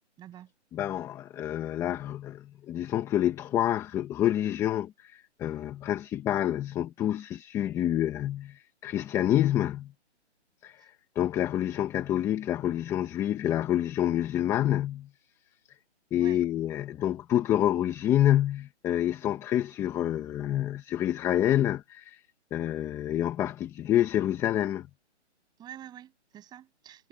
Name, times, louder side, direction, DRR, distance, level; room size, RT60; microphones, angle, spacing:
voice 1, 0.2-0.5 10.8-10.9 16.1-16.4 25.6-27.1, right 11 dB, 10° right, 8.0 m, -47 dB
voice 2, 0.7-9.9 10.6-15.1 16.1-22.2 22.5-24.9, left 12 dB, 10° left, 1.3 m, -28 dB
hypercardioid pair, 160°, 35 cm